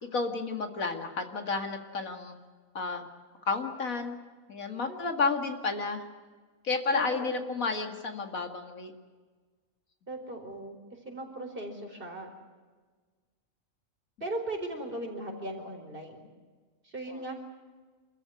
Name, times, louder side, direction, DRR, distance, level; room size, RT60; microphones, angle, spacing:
voice 1, 0.0-2.4 2.7-3.1 3.5-4.1 4.5-6.0 6.6-8.9 17.1-17.2, left 4 dB, 85° left, 6 dB, 2.5 m, -31 dB
voice 2, 4.8-5.3 6.9-7.4 10.1-10.8 11.0-12.3 14.2-16.3 16.8-17.3, right 1 dB, 40° right, 2 dB, 4.7 m, -38 dB
26.5 x 14.5 x 9.9 m, 1.4 s
omnidirectional pair, 1.4 m